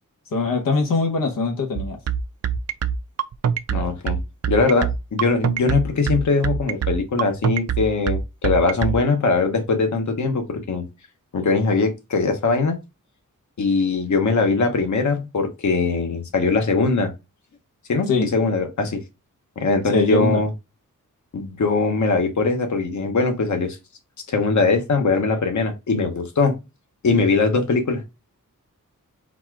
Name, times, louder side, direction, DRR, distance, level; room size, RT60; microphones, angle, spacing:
voice 1, 0.3-2.0 18.1-18.2 19.8-20.4, left 3 dB, 90° left, 1.0 m, -22 dB
sound 1, 1.8-9.0, right 8 dB, 50° right, 0.5 m, -23 dB
voice 2, 3.7-4.2 4.5-10.8 11.3-12.8 13.6-17.1 17.9-19.0 19.6-20.5 21.3-23.8 24.3-26.6 27.0-28.1, left 4 dB, 60° left, 1.0 m, -21 dB
4.1 x 2.4 x 4.6 m
wide cardioid pair, 140°, 32 cm